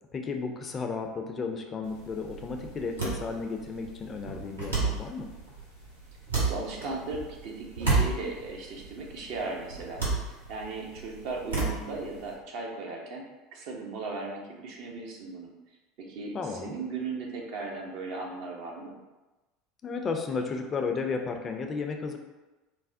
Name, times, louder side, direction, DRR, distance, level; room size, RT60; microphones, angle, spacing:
voice 1, 0.1-5.3 16.3-16.7 19.8-22.2, left 4 dB, 30° left, 4 dB, 0.4 m, -33 dB
sound 1, 1.8-12.3, right 4 dB, 85° right, 0.9 m, -33 dB
voice 2, 6.5-13.2 13.5-15.5 16.0-16.4 16.6-19.0, right 3 dB, 55° right, 0 dB, 0.6 m, -37 dB
3.3 x 2.1 x 2.6 m, 1.1 s
figure-of-eight pair, 70°, 0 cm